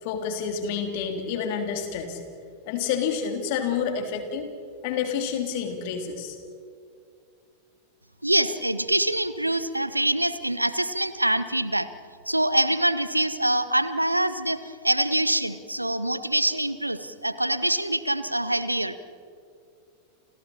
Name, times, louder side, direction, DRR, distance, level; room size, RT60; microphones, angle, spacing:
voice 1, 0.0-2.2 2.7-4.5 4.8-6.4, left 7 dB, 50° left, 4 dB, 3.3 m, -29 dB
voice 2, 8.2-11.9 12.3-19.0, right 1 dB, 85° right, 14 dB, 1.0 m, -25 dB
29.5 x 27.5 x 4.4 m, 2.3 s
figure-of-eight pair, 90°, 0 cm